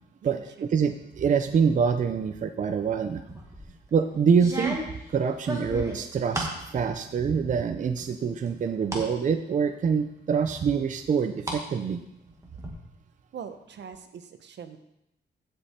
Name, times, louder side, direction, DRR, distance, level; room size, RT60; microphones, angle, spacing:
voice 1, 0.7-3.2 3.9-4.8 5.1-12.0, right 6 dB, 45° right, 8 dB, 0.5 m, -25 dB
sound 1, 3.3-3.7 4.3-6.6 7.0-7.6 8.0-9.1 9.5-9.6 10.5-11.6 11.9-12.7, right 1 dB, 15° right, 1.7 m, -35 dB
voice 2, 13.3-14.8, right 7 dB, 75° right, 9 dB, 0.8 m, -42 dB
15.5 x 5.3 x 4.3 m, 0.83 s
wide cardioid pair, 170°, 18 cm